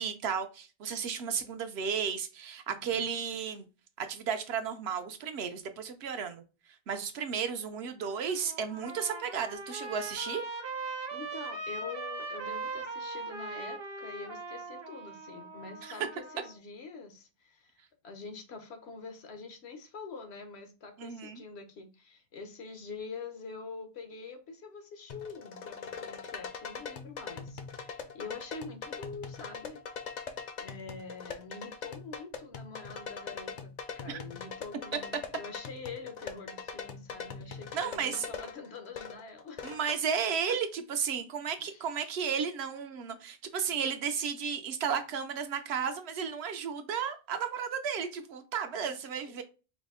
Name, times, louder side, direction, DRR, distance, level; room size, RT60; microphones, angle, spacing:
voice 1, 0.0-3.7 4.0-6.4 6.9-10.4 15.8-16.0 21.0-21.4 34.1-34.2 37.7-38.3 39.6-49.4, right 7 dB, 80° right, 0.9 m, -33 dB
voice 2, 2.7-3.0 11.1-29.8 30.6-39.7 40.5-40.6 41.7-41.9 48.8-49.0, left 4 dB, 80° left, 1.1 m, -45 dB
Trumpet, 8.1-16.5, right 3 dB, 35° right, 0.5 m, -40 dB
sound 1, 25.1-40.0, left 5 dB, 55° left, 0.6 m, -42 dB
4.9 x 2.1 x 3.6 m
omnidirectional pair, 1.1 m